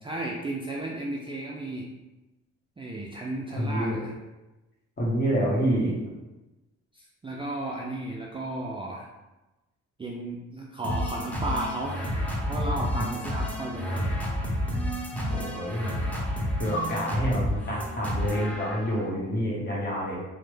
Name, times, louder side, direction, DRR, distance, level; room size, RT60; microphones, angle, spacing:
voice 1, 0.0-1.9 2.8-4.1 6.9-9.1 10.0-12.0 12.5-14.0, right 1 dB, 20° right, -3 dB, 0.3 m, -34 dB
voice 2, 3.6-4.0 5.0-5.9 15.3-15.9 16.6-20.2, equal, 35° left, -4 dB, 1.1 m, -27 dB
sound 1, 10.8-19.1, equal, 5° left, 0.9 m, -30 dB
3.1 x 2.1 x 3.1 m, 1.1 s
cardioid pair, 90°, 30 cm